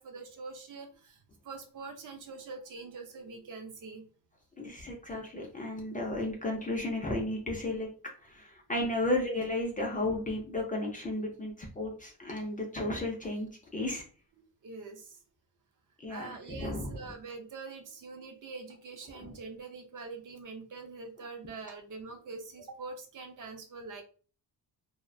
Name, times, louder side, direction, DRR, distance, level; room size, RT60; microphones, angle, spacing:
voice 1, 0.0-4.1 14.4-15.2 16.1-24.0, right 4 dB, 55° right, 5 dB, 0.5 m, -44 dB
voice 2, 4.6-7.9 8.2-14.0 16.0-17.0 19.1-19.3, left 1 dB, 20° left, 0 dB, 0.3 m, -34 dB
2.6 x 2.1 x 2.5 m, 0.39 s
wide cardioid pair, 165°, 39 cm